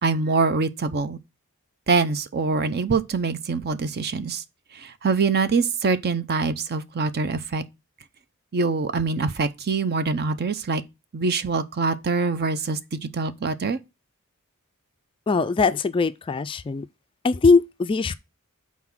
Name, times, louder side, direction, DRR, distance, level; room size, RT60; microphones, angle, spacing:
voice 1, 0.0-1.2 1.9-4.4 5.0-7.6 8.5-10.8 11.1-13.8, right 4 dB, 50° right, 0.6 m, -24 dB
voice 2, 15.3-16.8 17.2-18.1, left 4 dB, 25° left, 0.3 m, -21 dB
5.9 x 4.3 x 6.0 m
head